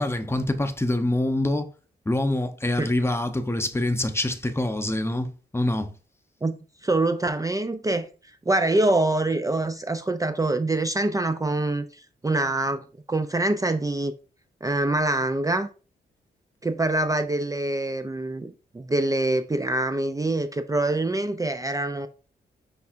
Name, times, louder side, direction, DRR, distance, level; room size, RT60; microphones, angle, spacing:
voice 1, 0.0-1.7 2.1-5.9, left 1 dB, 15° left, 0.8 m, -25 dB
voice 2, 6.4-8.1 8.5-14.1 14.6-15.7 16.6-22.1, right 2 dB, 20° right, 0.5 m, -25 dB
5.7 x 3.3 x 2.5 m
cardioid pair, 55°, 18 cm